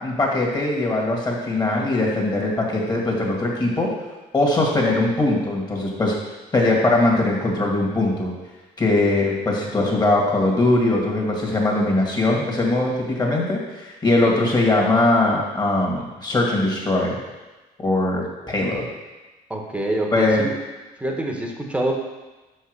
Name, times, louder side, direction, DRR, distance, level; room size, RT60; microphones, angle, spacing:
voice 1, 0.0-3.9 4.3-6.1 6.5-8.3 8.8-17.2 17.8-18.9 20.1-20.4, left 2 dB, 25° left, -1 dB, 2.0 m, -21 dB
voice 2, 19.5-20.5 21.0-21.9, right 1 dB, 5° right, 1 dB, 1.1 m, -25 dB
5.7 x 5.5 x 6.7 m, 1.2 s
cardioid pair, 110°, 17 cm